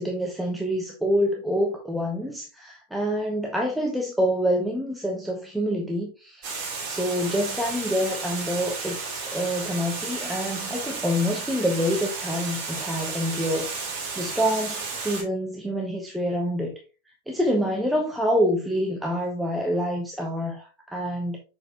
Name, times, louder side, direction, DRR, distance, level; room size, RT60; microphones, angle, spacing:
voice 1, 0.0-6.6 6.8-13.7 14.2-16.8 17.3-21.4, equal, 5° right, 1.0 m, -26 dB
Water, 6.4-15.2, right 4 dB, 40° right, 2.9 m, -33 dB
6.7 x 4.9 x 2.9 m
figure-of-eight pair, 90°, 0 cm